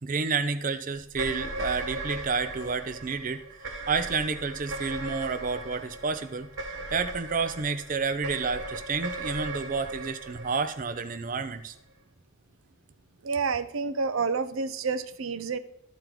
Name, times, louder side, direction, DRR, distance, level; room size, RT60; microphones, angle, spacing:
voice 1, 0.0-6.5 6.9-11.7, right 4 dB, 40° right, 9 dB, 0.6 m, -30 dB
sound 1, 1.1-11.6, right 2 dB, 70° right, 1.4 m, -38 dB
voice 2, 13.2-15.6, right 5 dB, 85° right, 10 dB, 0.7 m, -29 dB
12.5 x 4.5 x 3.8 m, 0.77 s
head